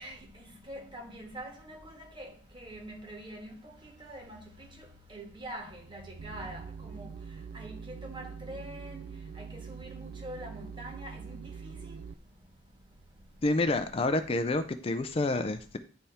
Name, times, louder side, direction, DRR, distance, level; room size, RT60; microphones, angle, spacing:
voice 1, 0.0-7.1 7.5-9.1 9.3-12.0, right 1 dB, 25° right, 1.5 m, -45 dB
sound 1, 6.2-12.1, right 6 dB, 55° right, 0.3 m, -44 dB
voice 2, 13.4-15.8, left 2 dB, 30° left, 0.4 m, -28 dB
10.0 x 3.5 x 4.2 m
head